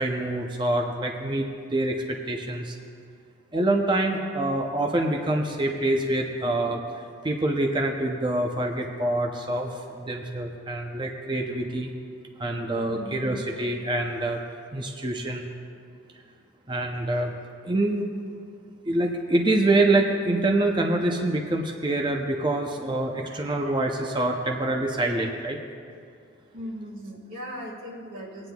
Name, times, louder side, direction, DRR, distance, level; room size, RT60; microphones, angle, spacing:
voice 1, 0.0-2.8 3.5-6.8 7.2-11.9 12.4-14.4 14.7-15.5 16.7-17.3 17.6-18.1 18.9-25.6, right 2 dB, 25° right, 1 dB, 0.5 m, -26 dB
voice 2, 12.9-13.4 16.9-17.2 23.3-23.7 26.5-28.5, equal, 80° right, -4 dB, 2.0 m, -39 dB
19.0 x 9.6 x 2.3 m, 2.3 s
head